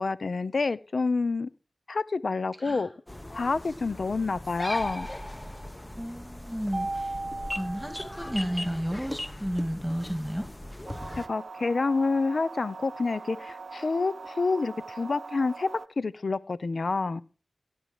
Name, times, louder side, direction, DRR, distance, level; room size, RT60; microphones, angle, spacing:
voice 1, 0.0-1.5 1.9-2.9 3.3-5.1 11.2-15.7 16.0-17.2, left 3 dB, 70° left, 16 dB, 0.8 m, -28 dB
voice 2, 2.6-2.9 5.9-7.2 7.5-10.5, equal, 5° right, 7 dB, 2.0 m, -32 dB
sound 1, 3.1-11.3, left 1 dB, 20° left, 1.0 m, -39 dB
Mallet percussion, 6.7-9.0, right 2 dB, 40° right, 0.8 m, -36 dB
sound 2, 10.9-15.9, right 4 dB, 75° right, 0.7 m, -42 dB
16.5 x 9.1 x 5.0 m, 0.37 s
cardioid pair, 50°, 0 cm